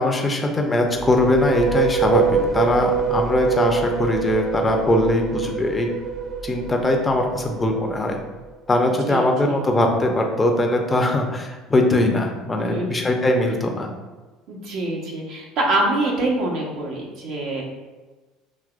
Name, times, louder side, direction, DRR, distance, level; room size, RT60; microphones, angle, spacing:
voice 1, 0.0-5.9 6.4-8.2 8.7-13.9, left 1 dB, 20° left, 2 dB, 0.8 m, -21 dB
sound 1, 0.8-8.5, right 6 dB, 50° right, 0.4 m, -25 dB
voice 2, 9.1-9.6 12.6-13.1 14.5-17.6, right 2 dB, 65° right, -2 dB, 1.1 m, -25 dB
6.3 x 2.9 x 2.5 m, 1.3 s
hypercardioid pair, 75°, 0 cm